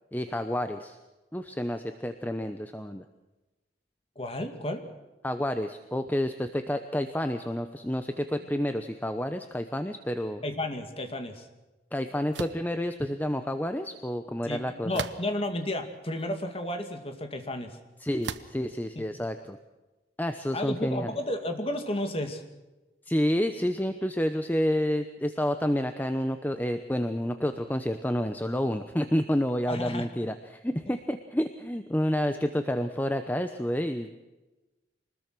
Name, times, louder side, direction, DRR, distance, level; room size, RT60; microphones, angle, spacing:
voice 1, 0.1-1.0 1.3-3.0 5.2-10.4 11.9-15.0 18.0-19.6 20.2-21.1 23.1-34.1, equal, 10° left, 8 dB, 0.8 m, -29 dB
voice 2, 4.2-4.8 10.4-11.5 14.4-14.6 14.8-17.8 19.1-19.2 20.5-22.4 29.7-30.1, left 1 dB, 30° left, 6 dB, 2.2 m, -32 dB
sound 1, 12.3-12.7 14.9-15.5 16.2-16.3 18.2-18.6, right 5 dB, 80° right, 1.0 m, -36 dB
25.0 x 20.0 x 6.1 m, 1.1 s
head